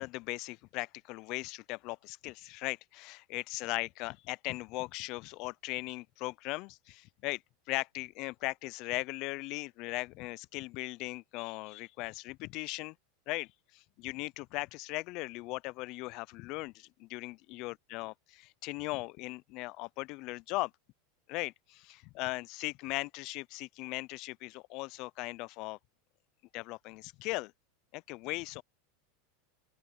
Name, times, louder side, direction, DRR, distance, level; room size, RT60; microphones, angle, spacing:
voice 1, 0.0-7.4 7.7-13.0 13.3-20.7 21.3-25.8 26.5-27.5 27.9-28.6, left 23 dB, 50° left, 0.4 m, -38 dB
open air
supercardioid pair, 140°, 0 cm